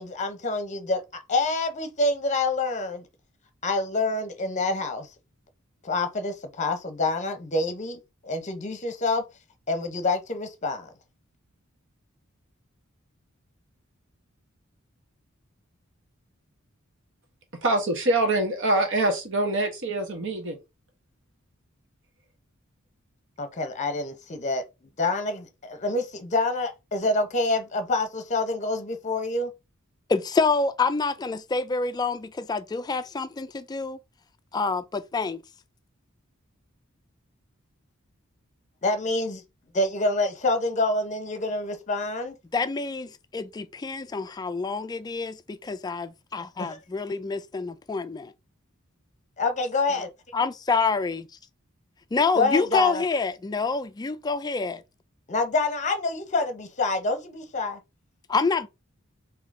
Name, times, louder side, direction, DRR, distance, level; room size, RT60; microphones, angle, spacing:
voice 1, 0.0-3.0 3.6-5.1 5.8-9.2 9.7-10.9 23.4-24.6 25.0-29.5 38.8-39.4 39.7-42.4 46.6-46.8 49.4-50.1 52.3-53.0 55.3-57.8, left 2 dB, 35° left, 0.7 m, -27 dB
voice 2, 17.6-20.6, right 2 dB, 60° right, 1.1 m, -24 dB
voice 3, 30.1-34.0 34.5-35.4 42.5-48.3 50.3-51.3 52.1-54.8 58.3-58.7, left 4 dB, 20° left, 0.3 m, -27 dB
3.7 x 2.8 x 3.6 m
head